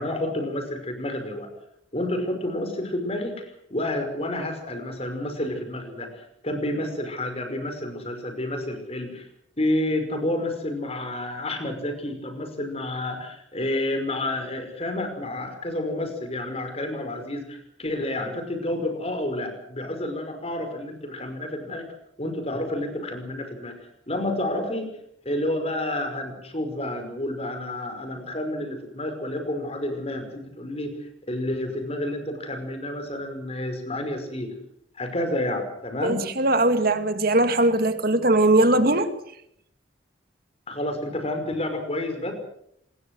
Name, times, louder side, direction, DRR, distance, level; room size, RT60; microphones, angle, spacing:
voice 1, 0.0-1.5 1.9-9.3 9.6-21.9 22.2-24.9 25.3-31.0 31.3-34.5 35.0-36.3 40.7-42.3, left 1 dB, 30° left, 5.5 m, -30 dB
voice 2, 36.0-39.1, right 2 dB, 50° right, 2.3 m, -20 dB
26.5 x 21.0 x 6.4 m
head